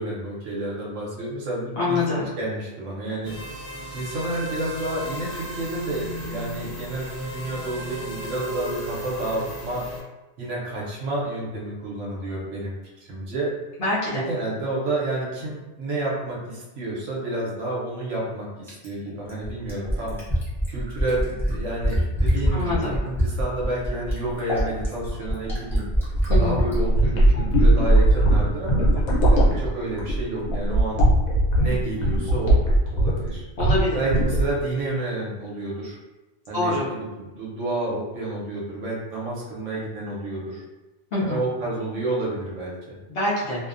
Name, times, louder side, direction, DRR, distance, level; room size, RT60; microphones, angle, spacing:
voice 1, 0.0-3.3 3.9-9.8 10.4-12.8 13.1-13.5 14.1-20.2 20.7-25.9 26.4-29.0 29.3-31.0 31.6-32.6 32.9-33.4 33.9-36.0 36.5-40.6 41.2-43.0, right 2 dB, 65° right, -5 dB, 1.0 m, -30 dB
voice 2, 1.8-2.3 13.8-14.2 22.5-23.0 26.3-26.6 33.6-34.0 36.5-36.9 41.1-41.4 43.1-43.7, left 2 dB, 55° left, -7 dB, 0.8 m, -25 dB
sound 1, 3.2-10.0, right 1 dB, 30° left, 1.1 m, -35 dB
Fill (with liquid), 18.7-26.8 28.1-28.2, equal, 5° left, 0.5 m, -25 dB
sound 2, 26.0-33.3 33.6-33.8 34.1-34.6, right 1 dB, 90° left, 1.1 m, -19 dB
2.6 x 2.1 x 2.4 m, 1.1 s
omnidirectional pair, 1.4 m